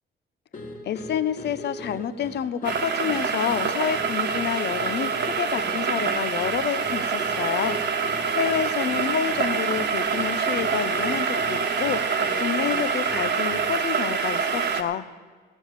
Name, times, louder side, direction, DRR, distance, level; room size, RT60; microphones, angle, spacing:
sound 1, 0.5-13.8, left 1 dB, 40° left, 2.1 m, -40 dB
voice 1, 0.8-15.1, left 9 dB, 60° left, 14 dB, 0.8 m, -29 dB
sound 2, 2.6-14.8, right 6 dB, 60° right, 1.5 m, -26 dB
16.0 x 7.1 x 8.0 m, 1.5 s
cardioid pair, 90°, 20 cm